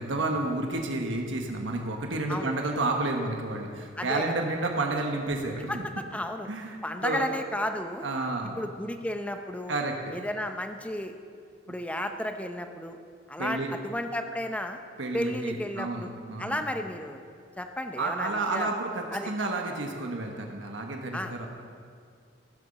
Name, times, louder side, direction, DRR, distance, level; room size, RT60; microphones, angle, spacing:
voice 1, 0.0-5.8 6.5-7.3 8.0-8.6 9.7-10.1 11.7-11.8 13.4-13.8 15.0-16.6 18.0-21.5, right 2 dB, 80° right, 2 dB, 1.2 m, -31 dB
voice 2, 6.1-6.5 6.8-8.1 8.6-9.8 10.1-11.1 11.7-13.0 13.3-14.8 15.1-16.1 16.4-17.2 17.6-18.7 19.1-19.3 21.1-21.3, left 1 dB, 5° left, 6 dB, 0.7 m, -33 dB
15.0 x 7.1 x 6.6 m, 2.3 s
head